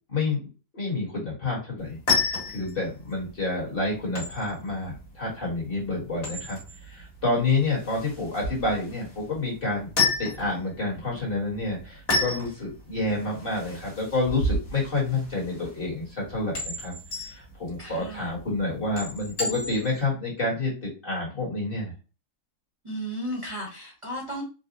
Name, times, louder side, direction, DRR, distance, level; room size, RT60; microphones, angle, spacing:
voice 1, 0.1-0.5 0.7-6.6 6.8-9.9 10.2-16.9 17.2-21.9, left 2 dB, 45° left, -3 dB, 1.6 m, -29 dB
sound 1, 1.8-20.0, left 3 dB, 75° left, 1.8 m, -32 dB
voice 2, 17.8-18.3 22.8-24.4, equal, 25° right, -4 dB, 1.1 m, -34 dB
4.0 x 2.2 x 2.6 m, 0.33 s
omnidirectional pair, 1.4 m